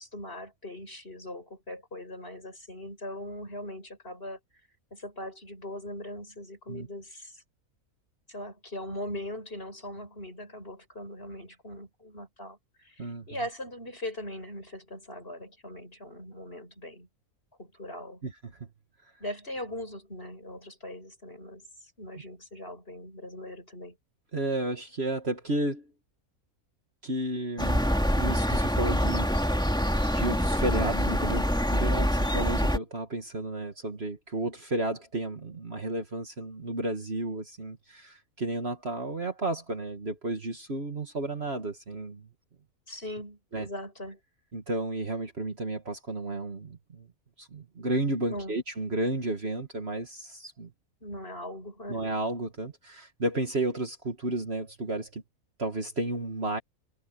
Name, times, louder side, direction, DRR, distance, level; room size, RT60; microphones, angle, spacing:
voice 1, 0.0-4.4 4.9-7.4 8.3-17.1 17.6-18.2 19.2-24.0 42.9-44.2 48.3-48.6 51.0-52.0, left 1 dB, 40° left, 8.2 m, -40 dB
voice 2, 18.2-18.6 24.3-25.9 27.0-27.8 28.2-29.7 30.1-42.3 43.5-43.7 44.5-47.1 47.4-50.7 51.9-55.2 55.6-56.6, right 2 dB, 45° right, 2.2 m, -32 dB
sound 1, 27.6-32.8, equal, 5° left, 2.5 m, -25 dB
omnidirectional pair, 1.5 m